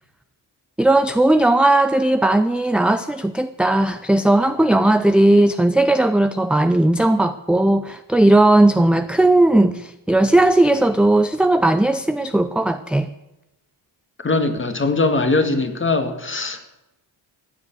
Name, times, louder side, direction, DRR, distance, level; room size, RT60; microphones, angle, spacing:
voice 1, 0.8-13.1, right 1 dB, ahead, 10 dB, 0.5 m, -17 dB
voice 2, 14.2-16.7, left 3 dB, 25° left, 8 dB, 1.9 m, -21 dB
15.0 x 9.5 x 9.6 m, 0.95 s
cardioid pair, 120°, 45 cm